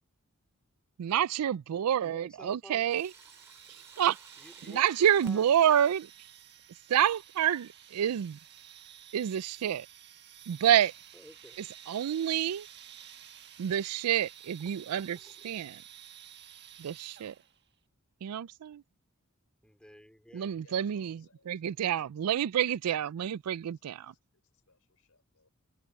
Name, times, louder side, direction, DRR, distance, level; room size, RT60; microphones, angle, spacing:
voice 1, 1.0-3.1 3.7-4.2 4.7-6.1 6.9-8.4 9.1-9.9 10.5-10.9 11.9-12.7 13.6-15.8 16.8-17.3 18.2-18.8 20.3-24.1, right 10 dB, 85° right, 0.4 m, -28 dB
voice 2, 2.0-2.8 4.4-5.4 11.1-11.6 19.6-20.6, equal, 5° left, 4.0 m, -52 dB
Sink (filling or washing), 2.6-6.2 8.6-8.7 10.6-10.8 11.3-11.4 12.2-12.3 13.0-13.1 13.8-15.7, right 2 dB, 10° right, 6.2 m, -59 dB
sound 1, 2.9-17.6, right 10 dB, 50° right, 1.4 m, -52 dB
voice 3, 20.6-22.7 23.6-24.0 24.3-25.5, left 4 dB, 70° left, 5.8 m, -66 dB
head